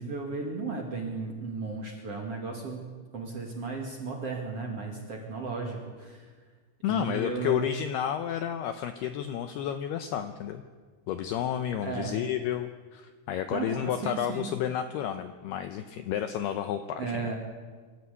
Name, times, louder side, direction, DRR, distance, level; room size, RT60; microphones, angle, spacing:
voice 1, 0.0-6.3 6.9-7.7 11.8-12.1 13.5-14.5 17.0-17.4, right 4 dB, 45° right, 0 dB, 2.2 m, -35 dB
voice 2, 6.8-10.6 11.1-17.2, left 10 dB, 85° left, 8 dB, 2.3 m, -31 dB
24.5 x 14.0 x 8.4 m, 1.5 s
omnidirectional pair, 5.6 m